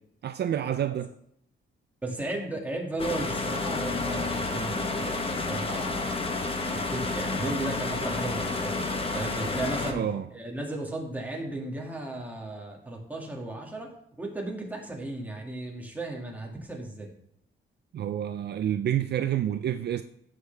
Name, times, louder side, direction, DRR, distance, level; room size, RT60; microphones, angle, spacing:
voice 1, 0.2-1.1 9.9-10.2 17.9-20.0, right 10 dB, 55° right, 0.5 m, -28 dB
voice 2, 2.0-6.3 6.7-13.9 14.2-17.1, right 2 dB, 10° right, 2.4 m, -35 dB
sound 1, 3.0-9.9, left 3 dB, 25° left, 1.3 m, -30 dB
16.5 x 6.5 x 3.5 m
wide cardioid pair, 155°, 20 cm